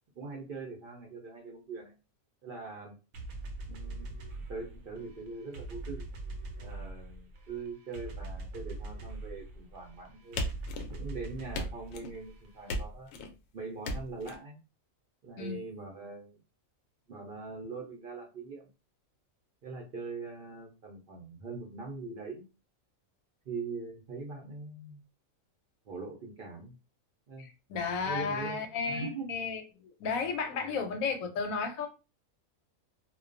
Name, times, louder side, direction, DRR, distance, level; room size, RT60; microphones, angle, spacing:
voice 1, 0.2-1.9 2.4-3.0 3.7-4.1 4.5-6.1 6.6-10.4 10.9-13.1 13.5-14.6 15.2-16.4 17.1-18.7 19.6-22.5 23.4-25.0 25.9-26.8 27.3-27.5 28.0-29.3 29.7-29.8 30.5-30.8, right 3 dB, 55° right, 0.6 m, -42 dB
sound 1, 3.1-12.7, right 2 dB, 85° right, 1.0 m, -43 dB
sound 2, 10.4-11.1 11.5-12.2 12.7-13.3 13.8-14.4, left 1 dB, 65° left, 0.7 m, -36 dB
voice 2, 27.4-31.9, left 5 dB, 90° left, 1.0 m, -33 dB
2.3 x 2.2 x 2.4 m
omnidirectional pair, 1.4 m